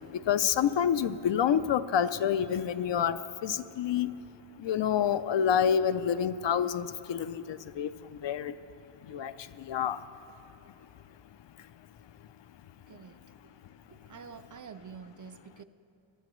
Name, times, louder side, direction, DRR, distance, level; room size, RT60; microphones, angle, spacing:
voice 1, 0.1-4.1 4.6-8.6 9.0-10.1, left 8 dB, 70° left, 13 dB, 0.5 m, -28 dB
voice 2, 12.9-13.5 13.9-15.6, right 6 dB, 45° right, 10 dB, 0.5 m, -48 dB
22.0 x 12.0 x 3.1 m, 2.9 s
wide cardioid pair, 130°, 46 cm